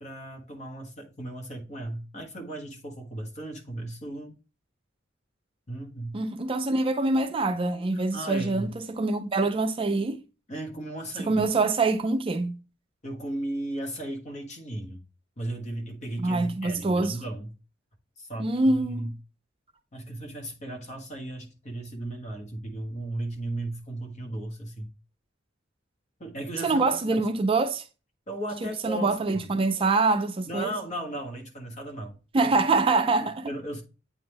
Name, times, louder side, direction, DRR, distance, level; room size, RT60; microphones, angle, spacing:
voice 1, 0.0-4.3 5.7-6.2 7.9-8.7 10.5-11.4 13.0-15.0 15.4-17.5 18.2-19.1 19.9-24.9 26.2-27.2 28.3-29.2 30.5-32.5 33.2-33.8, right 1 dB, 40° left, 1.4 m, -36 dB
voice 2, 6.1-10.2 11.3-12.5 16.2-17.2 18.4-19.1 26.6-27.8 28.6-30.7 32.3-33.5, right 3 dB, 30° right, 0.4 m, -25 dB
8.7 x 3.6 x 3.3 m
head